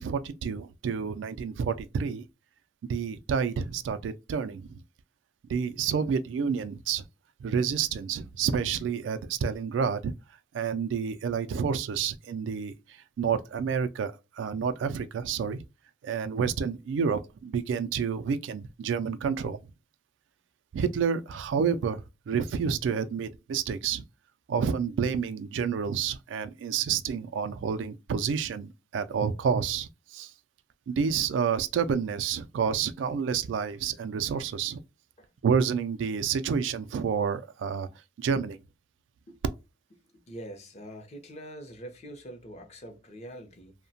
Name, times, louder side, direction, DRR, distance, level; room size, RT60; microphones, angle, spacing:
voice 1, 0.0-2.3 2.8-4.8 5.5-7.0 7.4-10.1 10.5-15.6 16.0-19.6 20.7-24.0 24.5-30.3 30.9-34.8 35.4-37.9 38.2-38.6, right 6 dB, 90° right, 0.3 m, -29 dB
voice 2, 40.3-43.7, right 1 dB, 40° left, 0.6 m, -44 dB
2.8 x 2.1 x 2.6 m
head